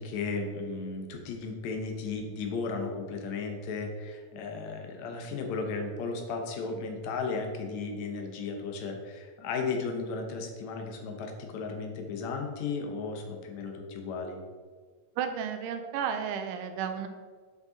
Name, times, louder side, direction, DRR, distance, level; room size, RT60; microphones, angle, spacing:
voice 1, 0.0-14.4, left 4 dB, 70° left, 4 dB, 1.9 m, -35 dB
voice 2, 15.2-17.1, right 7 dB, 80° right, 7 dB, 2.1 m, -32 dB
8.2 x 5.3 x 3.9 m, 1.5 s
omnidirectional pair, 3.9 m